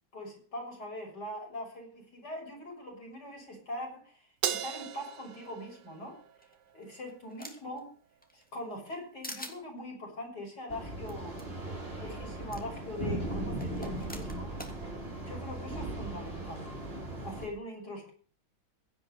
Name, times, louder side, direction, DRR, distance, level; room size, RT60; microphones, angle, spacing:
voice 1, 0.1-6.2 6.7-7.9 8.3-11.4 11.9-14.5 15.2-16.7 17.2-18.1, left 1 dB, 70° left, 1 dB, 7.2 m, -42 dB
Crash cymbal, 4.4-7.0, right 9 dB, 85° right, 1.7 m, -37 dB
sound 1, 6.4-7.8 8.2-9.0 9.2-9.6 11.1-11.2 11.4-11.5 12.5-12.6 13.6-14.8, equal, 5° left, 2.6 m, -44 dB
sound 2, 10.7-17.5, right 1 dB, 35° right, 4.8 m, -38 dB
16.5 x 10.0 x 6.7 m, 0.41 s
omnidirectional pair, 1.8 m